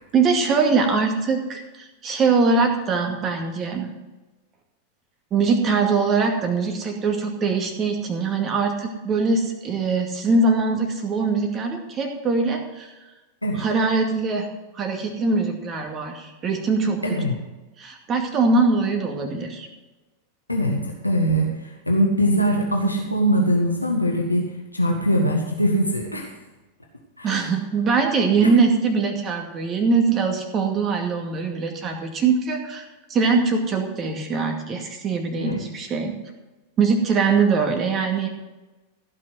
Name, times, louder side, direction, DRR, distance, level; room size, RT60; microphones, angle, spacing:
voice 1, 0.1-3.9 5.3-12.9 13.5-14.5 14.7-17.2 17.8-19.7 27.2-36.1 36.8-38.3, right 4 dB, 30° right, 3 dB, 2.3 m, -22 dB
voice 2, 17.0-17.3 20.5-21.5 21.9-24.4 24.7-26.3 27.2-27.3 35.4-35.6, equal, 85° left, 0 dB, 1.6 m, -21 dB
15.5 x 6.0 x 7.9 m, 1.1 s
figure-of-eight pair, 90°, 0 cm